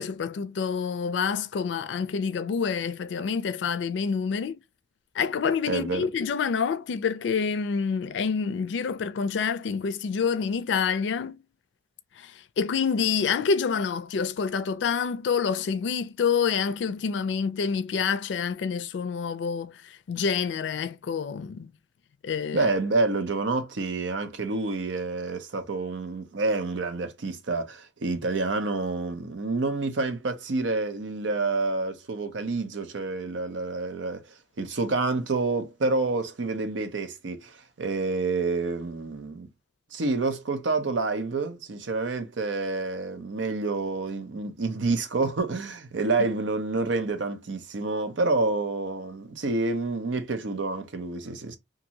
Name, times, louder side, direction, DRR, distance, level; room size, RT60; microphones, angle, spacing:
voice 1, 0.0-4.6 5.2-11.4 12.2-12.3 12.6-19.7 20.1-21.7 22.2-22.7, left 6 dB, 75° left, 0.4 m, -27 dB
voice 2, 5.7-6.1 22.5-34.2 34.6-39.5 39.9-51.6, right 3 dB, 90° right, 0.6 m, -28 dB
2.6 x 2.6 x 2.9 m
head